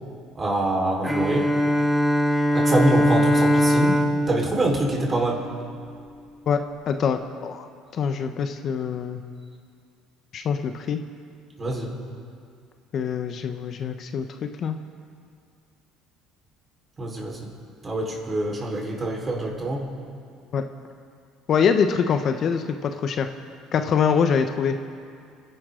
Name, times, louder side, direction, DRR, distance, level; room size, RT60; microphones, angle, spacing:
voice 1, 0.3-1.5 2.5-5.5 11.6-11.9 17.0-17.5 17.8-19.9, right 1 dB, 30° right, -1 dB, 4.3 m, -25 dB
Bowed string instrument, 1.0-5.8, equal, ahead, 1.3 m, -22 dB
voice 2, 6.5-7.7 7.9-9.2 10.3-11.0 12.9-14.8 20.5-20.6 21.5-23.3 23.7-24.8, left 6 dB, 50° left, 7 dB, 0.9 m, -24 dB
28.5 x 11.5 x 3.8 m, 2.3 s
supercardioid pair, 90°, 0 cm